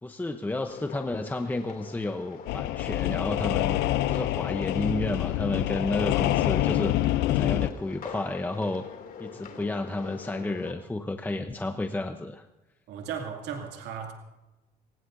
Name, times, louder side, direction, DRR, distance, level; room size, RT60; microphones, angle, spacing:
voice 1, 0.0-3.8 4.1-8.8 9.2-12.5, left 2 dB, 10° left, 7 dB, 0.8 m, -31 dB
sound 1, 0.7-10.7, left 7 dB, 55° left, 2.7 m, -44 dB
sound 2, 2.5-7.7, left 14 dB, 85° left, 0.6 m, -26 dB
voice 2, 12.9-14.1, right 7 dB, 85° right, 3 dB, 2.5 m, -36 dB
22.5 x 19.5 x 2.7 m, 1.0 s
cardioid pair, 110°, 17 cm